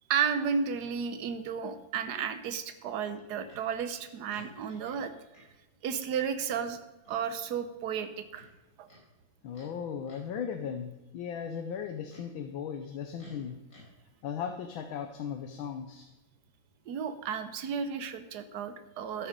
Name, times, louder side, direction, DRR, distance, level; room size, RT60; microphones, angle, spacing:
voice 1, 0.1-5.1 5.8-6.8 7.1-8.5 8.8-8.9 16.9-19.3, right 7 dB, 60° right, 10 dB, 1.3 m, -33 dB
Livestock farm animals working animals, 3.5-3.7 4.3-5.0 5.3-5.5 6.1-6.7 7.0-7.2 8.3-9.0 9.5-9.7 10.0-10.4 11.7-12.3 13.2-13.9, left 1 dB, 45° left, 5.3 m, -55 dB
voice 2, 9.4-13.6 14.2-16.1, left 7 dB, 80° left, 6 dB, 1.6 m, -37 dB
13.0 x 7.2 x 5.1 m, 1.0 s
omnidirectional pair, 2.2 m